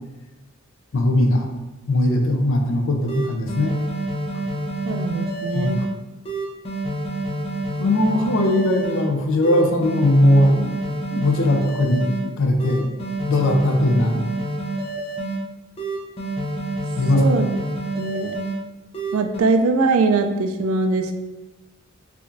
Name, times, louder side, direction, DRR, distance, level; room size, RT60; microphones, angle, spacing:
voice 1, 0.9-1.5 1.9-3.8 5.5-5.9 7.8-10.7 11.1-12.9 13.3-14.2 17.0-17.4, left 1 dB, 65° left, 3 dB, 0.5 m, -19 dB
sound 1, 2.7-2.8 3.1-5.9 6.2-9.0 9.4-12.2 12.6-15.4 15.8-18.5 18.9-19.4, right 2 dB, 30° left, 0.6 m, -28 dB
voice 2, 4.8-5.8 17.2-17.5 17.9-18.3 19.1-21.1, right 3 dB, 90° right, 7 dB, 0.4 m, -21 dB
4.7 x 2.5 x 2.6 m, 1.1 s
head